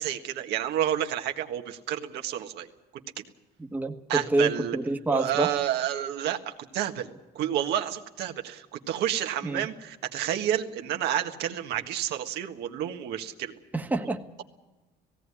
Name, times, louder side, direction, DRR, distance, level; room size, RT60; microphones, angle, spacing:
voice 1, 0.0-3.3 4.1-4.8 5.1-7.1 7.3-13.5, right 11 dB, 80° right, 5 dB, 1.6 m, -30 dB
voice 2, 3.7-5.5 9.4-9.7 13.7-14.2, right 2 dB, 10° right, 5 dB, 1.4 m, -27 dB
17.5 x 17.0 x 9.8 m, 1.1 s
cardioid pair, 110°, 17 cm